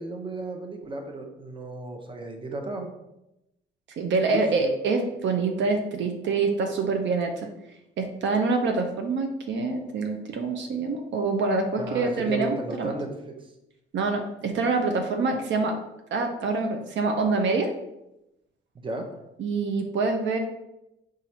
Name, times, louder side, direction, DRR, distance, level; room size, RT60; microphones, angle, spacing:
voice 1, 0.0-2.9 4.3-4.7 11.8-13.3 18.8-19.1, right 2 dB, 25° right, 3 dB, 0.7 m, -34 dB
voice 2, 4.0-7.5 8.0-12.9 13.9-15.8 16.1-17.7 19.4-20.4, right 3 dB, 65° right, 4 dB, 0.5 m, -26 dB
4.0 x 2.5 x 4.3 m, 0.89 s
cardioid pair, 90°, 20 cm